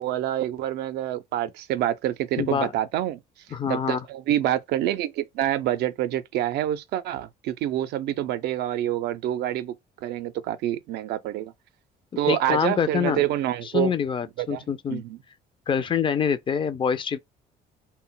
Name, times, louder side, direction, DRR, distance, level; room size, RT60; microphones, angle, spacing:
voice 1, 0.0-3.2 3.7-9.7 10.0-11.5 12.2-13.9 14.4-15.2, right 12 dB, 75° right, 0.4 m, -27 dB
voice 2, 2.4-2.7 3.5-4.0 12.3-13.3 13.7-15.0 15.7-17.2, left 7 dB, 30° left, 0.4 m, -25 dB
2.1 x 2.0 x 3.7 m
cardioid pair, 110°, 17 cm